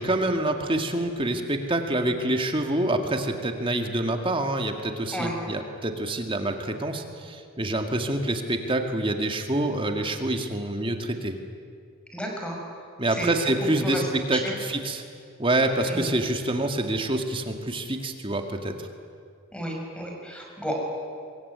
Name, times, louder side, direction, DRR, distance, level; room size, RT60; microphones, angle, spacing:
voice 1, 0.0-11.4 13.0-15.0 15.4-18.7, right 1 dB, 25° right, 5 dB, 2.0 m, -26 dB
voice 2, 12.1-12.6 13.1-13.3 13.8-14.6 15.9-16.1 19.5-20.8, equal, 5° left, 0 dB, 5.7 m, -32 dB
24.5 x 22.5 x 9.6 m, 2.3 s
head